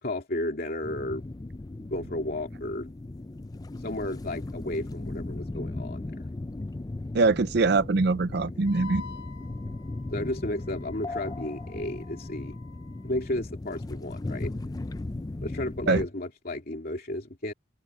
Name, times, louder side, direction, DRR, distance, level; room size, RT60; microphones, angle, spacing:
voice 1, 0.0-1.2 1.9-2.9 3.8-6.3 10.1-12.5 13.0-14.5 15.4-17.5, left 1 dB, 50° left, 2.7 m, -33 dB
sound 1, 0.8-16.1, left 2 dB, 20° left, 0.4 m, -37 dB
voice 2, 7.1-9.0 15.9-16.0, right 3 dB, 60° right, 0.6 m, -23 dB
Wind instrument woodwind instrument, 8.7-13.3, left 6 dB, 85° left, 3.8 m, -48 dB
open air
head